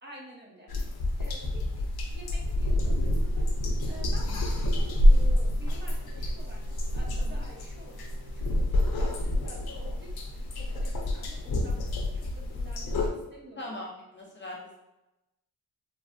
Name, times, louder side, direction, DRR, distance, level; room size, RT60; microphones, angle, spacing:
voice 1, 0.0-0.7 1.2-11.9 12.1-13.7, equal, 30° right, -3 dB, 0.8 m, -50 dB
sound 1, 0.7-13.1, left 1 dB, 80° left, 0.6 m, -27 dB
sound 2, 2.6-9.0, right 1 dB, 75° right, 1.0 m, -54 dB
voice 2, 13.6-14.8, left 1 dB, 30° left, -2 dB, 0.5 m, -40 dB
3.2 x 2.2 x 2.5 m, 0.96 s
wide cardioid pair, 110°, 37 cm